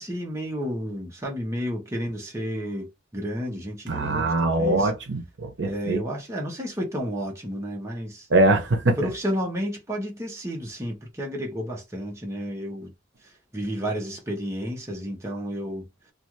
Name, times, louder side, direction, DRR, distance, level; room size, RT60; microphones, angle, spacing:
voice 1, 0.0-4.9 5.6-8.3 9.0-12.9 13.2-15.9, equal, 15° right, 0.8 m, -31 dB
voice 2, 3.9-6.0 8.3-9.0, right 2 dB, 70° right, 0.7 m, -22 dB
2.4 x 2.4 x 2.9 m
head